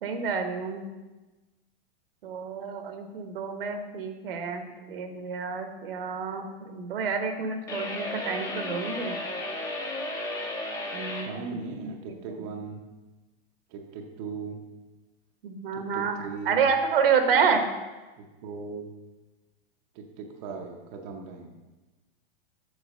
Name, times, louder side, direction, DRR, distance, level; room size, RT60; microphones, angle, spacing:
voice 1, 0.0-0.9 2.2-9.1 10.9-11.3 11.8-11.9 15.4-16.2 16.4-17.7, right 6 dB, 70° right, 6 dB, 1.2 m, -28 dB
sound 1, 7.7-11.3, left 2 dB, 10° left, 0.7 m, -34 dB
voice 2, 11.2-12.8 13.7-14.6 15.7-16.7 18.2-18.9 19.9-21.5, right 4 dB, 35° right, 2 dB, 0.7 m, -38 dB
7.9 x 4.8 x 6.3 m, 1.2 s
supercardioid pair, 165°, 29 cm